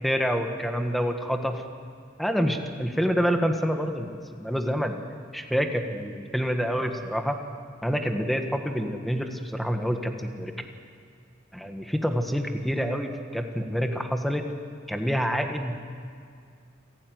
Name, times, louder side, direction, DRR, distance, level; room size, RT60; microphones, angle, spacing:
voice 1, 0.0-1.6 2.2-4.1 4.4-5.0 5.3-7.4 7.8-10.5 11.5-14.4 14.9-15.8, equal, ahead, 4 dB, 1.6 m, -27 dB
28.5 x 18.0 x 9.5 m, 2.2 s
head